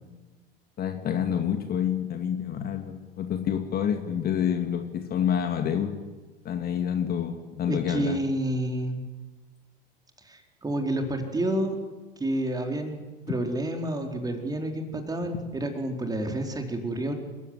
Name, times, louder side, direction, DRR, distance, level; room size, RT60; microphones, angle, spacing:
voice 1, 0.8-5.9 6.4-8.2, left 9 dB, 30° left, 5 dB, 2.5 m, -28 dB
voice 2, 7.7-9.0 10.2-11.8 12.2-17.1, right 1 dB, 15° right, 4 dB, 4.3 m, -29 dB
29.0 x 16.0 x 10.0 m, 1.3 s
figure-of-eight pair, 85°, 29 cm